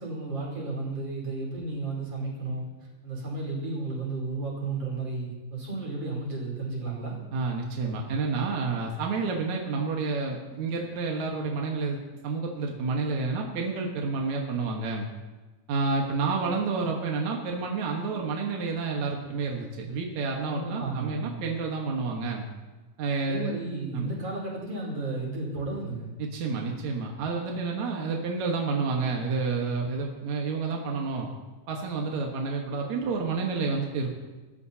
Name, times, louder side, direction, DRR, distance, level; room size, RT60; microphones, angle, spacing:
voice 1, 0.0-2.6 3.0-7.2 20.5-21.4 23.3-26.1, right 3 dB, 35° right, -3 dB, 5.4 m, -33 dB
voice 2, 7.3-12.0 12.2-15.1 15.7-22.5 23.0-23.5 23.9-24.1 26.2-31.3 31.7-34.2, right 4 dB, 65° right, 0 dB, 1.8 m, -29 dB
28.0 x 14.0 x 2.9 m, 1.2 s
omnidirectional pair, 5.4 m